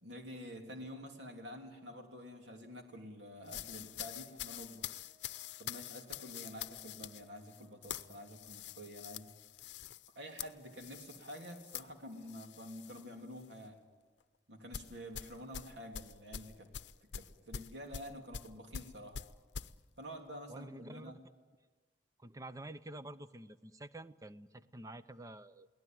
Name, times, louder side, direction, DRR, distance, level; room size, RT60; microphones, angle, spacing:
voice 1, 0.0-4.9 5.6-9.3 10.1-13.8 14.5-16.7 17.0-19.2 20.0-21.2, equal, 90° right, 3 dB, 3.2 m, -49 dB
sound 1, 3.5-13.1 13.4-13.7 14.7-19.7, left 9 dB, 85° left, 0.7 m, -46 dB
Wind instrument woodwind instrument, 4.6-9.1, right 2 dB, 45° right, 4.7 m, -70 dB
voice 2, 20.5-21.2 22.2-25.7, right 1 dB, 20° right, 13 dB, 0.7 m, -49 dB
22.5 x 17.5 x 9.3 m, 1.3 s
head